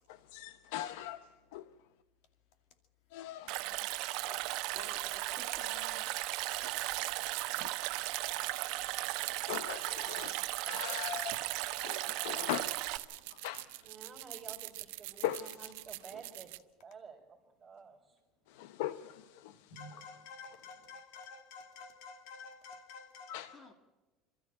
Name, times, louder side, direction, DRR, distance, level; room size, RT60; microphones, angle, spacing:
voice 1, 0.1-1.6 3.1-3.9 4.2-4.4 6.9-7.2 7.6-7.7 9.5-12.9 13.3-13.8 15.2-15.7 18.5-19.8 23.3-23.5, left 13 dB, 80° left, 0.7 m, -41 dB
Stream, 3.5-13.0, right 18 dB, 55° right, 0.9 m, -36 dB
voice 2, 4.5-6.1 23.5-23.7, left 3 dB, 25° left, 1.7 m, -54 dB
sound 1, 6.5-16.6, right 21 dB, 85° right, 0.7 m, -46 dB
voice 3, 10.0-10.4 13.8-16.5 16.8-18.2, right 5 dB, 15° right, 4.1 m, -52 dB
voice 4, 19.5-23.6, left 4 dB, 60° left, 2.3 m, -50 dB
26.5 x 13.5 x 8.7 m
cardioid pair, 170°, 0 cm